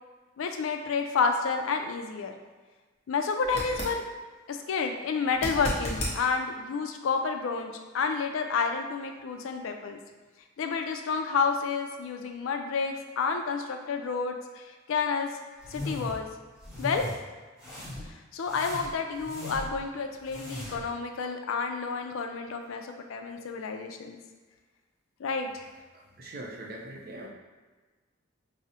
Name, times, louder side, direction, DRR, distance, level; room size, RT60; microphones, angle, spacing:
voice 1, 0.4-2.3 3.1-4.0 4.5-10.0 10.6-15.3 15.7-16.3 16.8-17.0 18.1-24.2 25.2-25.6, left 5 dB, 80° left, 5 dB, 0.4 m, -30 dB
sound 1, 3.4-4.0 5.3-6.2 9.2-9.3, equal, 30° left, 0.7 m, -33 dB
sound 2, 15.6-16.2 16.6-17.2 17.6-18.1 18.4-19.8 20.2-20.9, left 1 dB, 5° right, 1.0 m, -38 dB
voice 2, 25.9-27.3, right 1 dB, 45° right, -1 dB, 0.5 m, -42 dB
4.7 x 2.0 x 2.8 m, 1.3 s
head